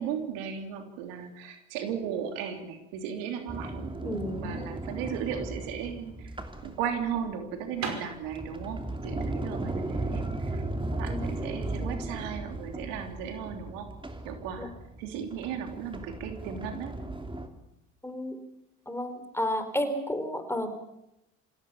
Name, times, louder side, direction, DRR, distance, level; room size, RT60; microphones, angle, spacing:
voice 1, 0.0-6.3 6.6-10.6 10.9-13.9 14.2-14.7 15.0-17.0, right 7 dB, 80° right, 6 dB, 3.3 m, -36 dB
Sliding door, 3.5-7.3 7.9-17.5, right 2 dB, 15° right, 2.9 m, -36 dB
voice 2, 4.0-4.6 11.1-11.4 11.8-12.0 14.6-14.7 15.1-15.2 18.0-18.4 18.9-20.7, left 1 dB, 5° left, 9 dB, 4.4 m, -32 dB
sound 1, 7.7-11.5, right 5 dB, 50° right, 5.5 m, -42 dB
26.5 x 16.5 x 7.2 m, 0.86 s
hypercardioid pair, 70°, 34 cm